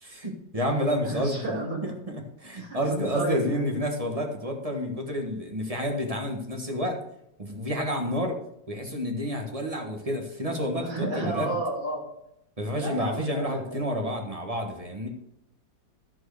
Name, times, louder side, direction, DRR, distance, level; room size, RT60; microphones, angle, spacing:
voice 1, 0.0-7.0 7.4-8.4 8.7-11.6 12.6-15.1, equal, 20° right, 3 dB, 1.4 m, -30 dB
voice 2, 1.0-1.8 2.6-3.7 10.8-12.0 12.8-13.8, right 2 dB, 70° right, -3 dB, 4.2 m, -32 dB
12.5 x 4.7 x 6.6 m, 0.80 s
omnidirectional pair, 2.0 m